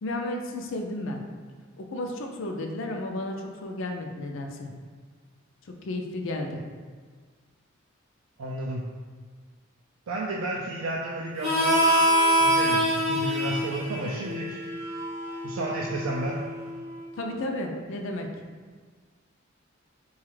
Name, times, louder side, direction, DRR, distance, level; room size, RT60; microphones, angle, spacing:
voice 1, 0.0-1.2 1.8-4.7 5.8-6.6 17.2-18.3, left 1 dB, 60° left, 2 dB, 0.4 m, -33 dB
voice 2, 8.4-8.8 10.1-11.8 12.4-14.6 15.4-16.4, right 2 dB, 70° right, -3 dB, 0.4 m, -32 dB
Harmonica, 11.4-16.7, equal, 30° right, 0.9 m, -25 dB
4.0 x 2.3 x 3.1 m, 1.5 s
head